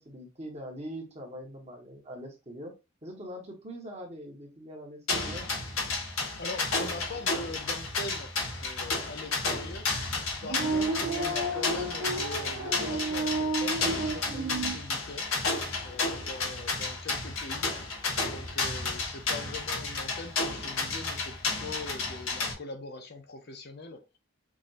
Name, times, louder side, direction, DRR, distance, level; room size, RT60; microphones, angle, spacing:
voice 1, 0.0-2.7 3.0-5.5, equal, 30° right, 1.4 m, -42 dB
sound 1, 5.1-22.5, left 3 dB, 85° left, 1.6 m, -32 dB
voice 2, 6.4-15.3 15.8-17.7 18.2-24.0, left 2 dB, 50° left, 0.7 m, -42 dB
sound 2, 10.4-14.8, right 2 dB, 75° right, 1.2 m, -31 dB
6.1 x 2.6 x 2.6 m
head